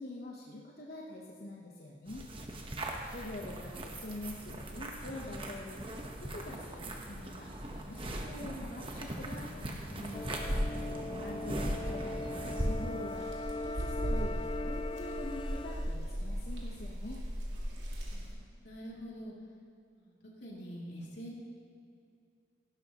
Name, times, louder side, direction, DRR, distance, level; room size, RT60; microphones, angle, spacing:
voice 1, 0.0-2.3 3.1-10.4 10.9-17.2, left 1 dB, 55° left, -3 dB, 1.0 m, -45 dB
sound 1, 2.1-13.2, right 1 dB, 30° right, 1.1 m, -39 dB
sound 2, 10.1-16.0, left 2 dB, 25° left, 0.3 m, -40 dB
sound 3, 13.1-18.3, equal, 80° right, 2.5 m, -37 dB
voice 2, 18.1-19.3 20.0-20.1 20.4-21.4, equal, 80° left, -4 dB, 2.8 m, -46 dB
17.0 x 12.0 x 3.0 m, 2.4 s
head